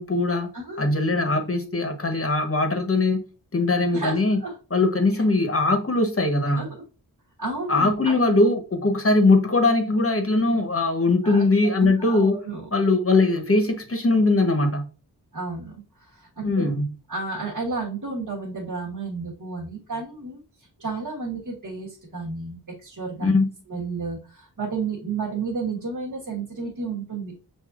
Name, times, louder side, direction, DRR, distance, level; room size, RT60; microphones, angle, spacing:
voice 1, 0.0-0.5 0.8-3.2 3.5-4.4 4.7-6.7 7.7-12.4 12.7-14.9 16.4-16.9 23.2-23.5, left 2 dB, 35° left, 1.0 m, -21 dB
voice 2, 0.5-0.9 3.9-4.5 6.5-6.7 7.4-8.3 11.2-11.4 11.8-12.7 15.3-16.7 17.1-20.4 20.8-23.3 23.7-27.3, right 4 dB, 55° right, 1.4 m, -32 dB
6.1 x 2.7 x 2.4 m
wide cardioid pair, 50°, 40 cm